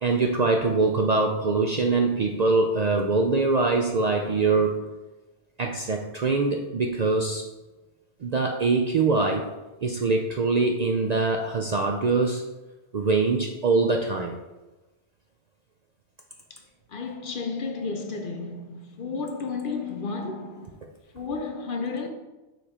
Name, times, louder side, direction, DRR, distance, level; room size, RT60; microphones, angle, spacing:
voice 1, 0.0-4.8 5.6-7.4 8.2-9.4 9.8-12.4 12.9-14.3, right 3 dB, 55° right, 0.4 m, -23 dB
voice 2, 16.9-20.8 21.1-22.1, left 4 dB, 55° left, 0.7 m, -32 dB
6.7 x 3.3 x 4.3 m
omnidirectional pair, 1.1 m